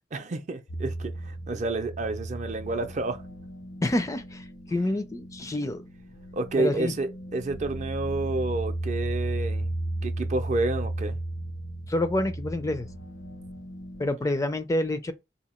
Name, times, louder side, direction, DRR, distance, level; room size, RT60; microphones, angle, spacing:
voice 1, 0.1-3.2 6.3-9.7 10.0-11.2, right 2 dB, 40° right, 0.5 m, -30 dB
sound 1, 0.7-14.1, right 1 dB, 85° left, 0.7 m, -35 dB
voice 2, 3.8-5.8 6.6-6.9 11.9-12.9 14.0-15.1, left 1 dB, 20° left, 0.4 m, -27 dB
2.8 x 2.6 x 4.2 m
head